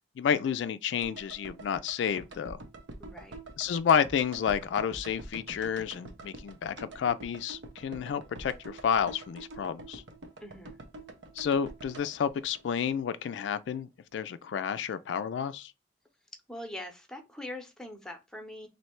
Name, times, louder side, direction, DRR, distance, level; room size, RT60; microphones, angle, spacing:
voice 1, 0.2-2.6 3.6-10.0 11.4-15.7, left 7 dB, 80° left, 0.3 m, -30 dB
sound 1, 1.0-13.2 13.5-13.6, right 2 dB, 85° right, 0.8 m, -46 dB
voice 2, 3.0-3.4 10.4-10.7 16.5-18.7, left 1 dB, 5° left, 0.7 m, -42 dB
3.2 x 2.7 x 4.3 m
head